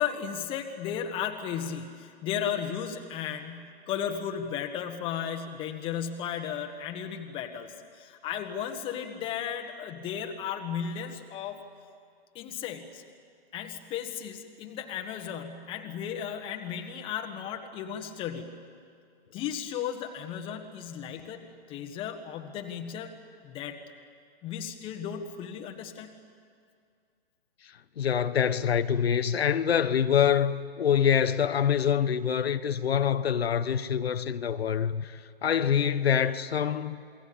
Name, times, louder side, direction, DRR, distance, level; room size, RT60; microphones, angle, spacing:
voice 1, 0.0-11.6 12.3-13.0 13.5-18.6 19.3-23.1 23.4-23.8 24.4-26.1, left 8 dB, 15° left, 1.6 m, -35 dB
voice 2, 28.0-37.0, left 8 dB, 80° left, 1.2 m, -25 dB
28.5 x 22.0 x 8.7 m
hypercardioid pair, 160°, 30 cm